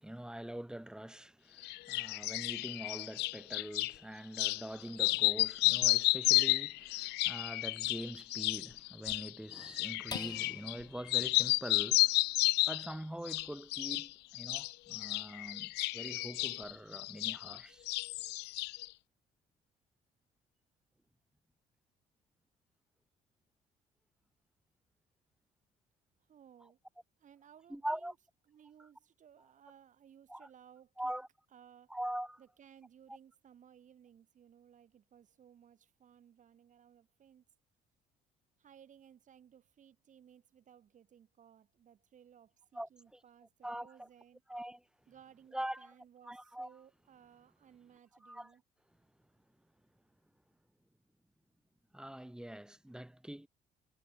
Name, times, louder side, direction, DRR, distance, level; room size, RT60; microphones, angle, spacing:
voice 1, 0.0-12.2 12.7-17.9 27.7-28.1 30.3-30.5 31.0-31.3 31.9-32.4 42.7-43.2 43.6-44.1 44.5-44.8 45.5-45.9 46.2-46.7 48.2-48.5 51.9-53.5, right 1 dB, 5° right, 3.3 m, -43 dB
sound 1, 1.6-3.9 4.3-4.6 4.9-10.8 11.1-12.9 13.3-14.1 14.3-17.6 17.9-18.9, left 21 dB, 85° left, 0.5 m, -32 dB
sound 2, 10.1-16.8 17.3-17.4 17.8-18.3, left 4 dB, 25° left, 4.8 m, -54 dB
voice 2, 26.3-26.8 27.2-28.1 28.5-31.1 31.5-32.0 32.4-37.4 38.6-44.4 45.1-48.6, right 9 dB, 50° right, 3.5 m, -61 dB
cardioid pair, 110°, 17 cm